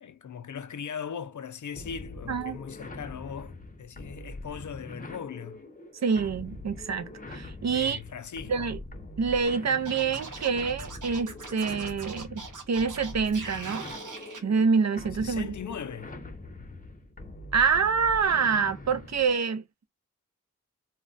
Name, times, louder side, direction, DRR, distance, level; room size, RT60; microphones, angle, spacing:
voice 1, 0.0-5.6 7.7-8.7 15.2-16.2, left 7 dB, 70° left, 0.4 m, -39 dB
sound 1, 1.8-19.4, left 2 dB, 25° left, 0.6 m, -43 dB
voice 2, 6.0-8.0 8.5-8.8 9.2-13.9 14.4-15.5 17.5-19.6, right 5 dB, 60° right, 0.5 m, -26 dB
Scratching (performance technique), 9.8-14.4, right 4 dB, 80° right, 0.8 m, -42 dB
2.2 x 2.1 x 3.8 m
wide cardioid pair, 60°, 31 cm